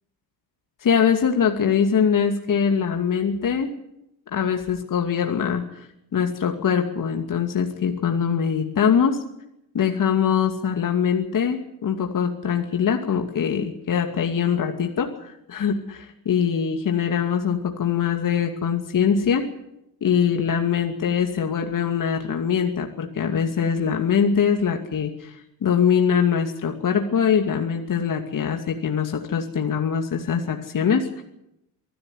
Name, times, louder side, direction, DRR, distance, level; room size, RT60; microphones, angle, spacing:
voice 1, 0.8-3.7 4.3-5.8 6.1-9.2 9.7-19.4 20.0-31.2, left 7 dB, 40° left, 4 dB, 2.6 m, -23 dB
24.0 x 12.5 x 9.9 m, 0.83 s
hypercardioid pair, 60°, 50 cm